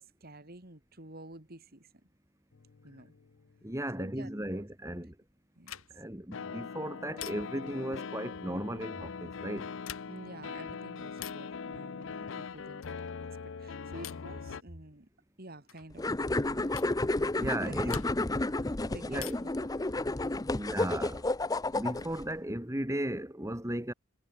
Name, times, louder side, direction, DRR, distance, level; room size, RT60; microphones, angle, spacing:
voice 1, 0.0-1.9 2.8-3.1 4.0-5.0 5.6-5.7 10.1-12.8 13.6-15.1 15.4-16.8 17.4-17.9 18.8-20.0, right 1 dB, 45° right, 3.1 m, -49 dB
sound 1, 2.5-3.6 6.3-14.6, left 5 dB, 60° left, 0.5 m, -42 dB
voice 2, 3.6-5.1 5.9-9.7 17.4-18.0 19.1-19.4 20.5-21.2 21.7-23.9, right 1 dB, 15° right, 2.5 m, -36 dB
sound 2, 5.6-6.2 7.2-7.8 9.7-10.4 11.2-11.6 12.8-13.1 14.0-14.4 15.7-15.9 16.8-17.0 17.9-18.4 19.2-19.7 21.1-21.8, left 11 dB, 80° left, 6.9 m, -46 dB
sound 3, 16.0-22.2, left 2 dB, 15° left, 0.6 m, -31 dB
head